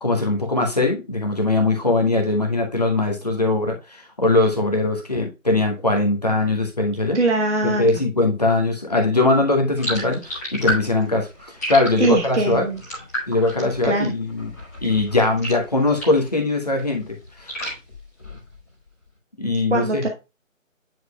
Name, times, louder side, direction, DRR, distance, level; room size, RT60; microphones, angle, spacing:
voice 1, 0.0-7.2 7.6-12.7 13.3-14.5 14.8-17.5 19.4-20.0, left 2 dB, 30° left, 2 dB, 1.0 m, -21 dB
voice 2, 7.1-7.9 12.0-12.8 13.8-14.1 19.7-20.1, right 2 dB, 55° right, 2 dB, 1.1 m, -21 dB
sound 1, 9.8-16.3 16.7-18.7, equal, 10° left, 1.6 m, -32 dB
9.2 x 4.9 x 2.3 m, 0.26 s
figure-of-eight pair, 160°, 40 cm